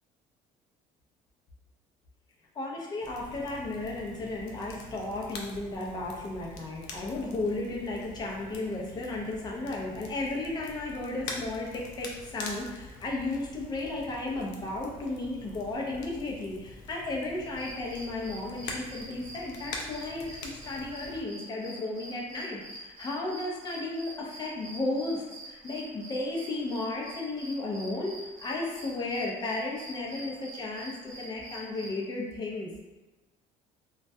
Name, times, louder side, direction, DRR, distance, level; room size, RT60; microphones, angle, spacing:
voice 1, 2.5-32.7, left 2 dB, 30° left, -2 dB, 0.5 m, -34 dB
Crackle, 3.0-21.2, left 3 dB, 75° left, 0.4 m, -45 dB
sound 1, 17.4-31.9, right 1 dB, 85° right, 0.7 m, -46 dB
2.2 x 2.1 x 2.6 m, 1.1 s
cardioid pair, 125°, 13 cm